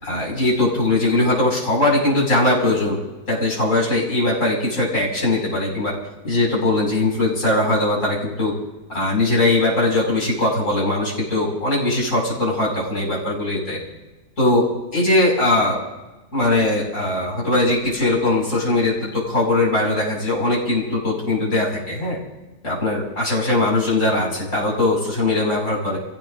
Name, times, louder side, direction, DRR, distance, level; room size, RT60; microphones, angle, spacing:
voice 1, 0.0-3.0 3.3-5.9 6.2-8.5 8.9-13.8 14.4-15.8 16.3-22.2 22.6-26.0, left 2 dB, 50° left, -3 dB, 5.9 m, -20 dB
29.0 x 16.0 x 2.6 m, 1.1 s
omnidirectional pair, 1.7 m